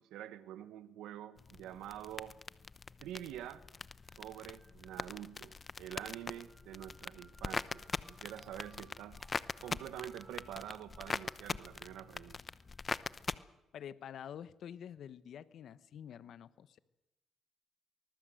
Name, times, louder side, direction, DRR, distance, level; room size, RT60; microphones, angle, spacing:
voice 1, 0.0-2.4 3.0-3.7 4.2-9.2 9.6-12.4, right 11 dB, 90° right, 13 dB, 1.4 m, -47 dB
sound 1, 1.4-13.3, left 4 dB, 35° left, 0.9 m, -43 dB
sound 2, 4.0-13.2, right 2 dB, 20° right, 5.1 m, -66 dB
Liquid, 8.1-11.0, right 4 dB, 40° right, 4.4 m, -67 dB
voice 2, 13.7-16.8, left 9 dB, 70° left, 15 dB, 1.2 m, -48 dB
24.0 x 19.5 x 7.8 m, 0.95 s
cardioid pair, 90°, 0 cm